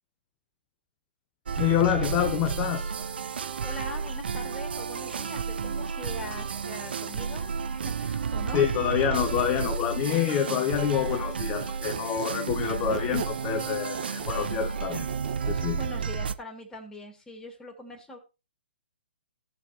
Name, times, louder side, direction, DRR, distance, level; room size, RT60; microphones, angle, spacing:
sound 1, 1.5-16.3, right 6 dB, 65° right, 0.7 m, -32 dB
voice 1, 1.6-2.9 8.5-15.1 15.5-15.8, left 10 dB, 25° left, 0.9 m, -27 dB
voice 2, 3.6-8.6 15.7-18.2, left 1 dB, 10° left, 2.8 m, -42 dB
Squeak, 8.8-11.3 11.5-15.7, right 7 dB, 45° right, 1.6 m, -39 dB
18.0 x 6.6 x 3.0 m
figure-of-eight pair, 130°, 6 cm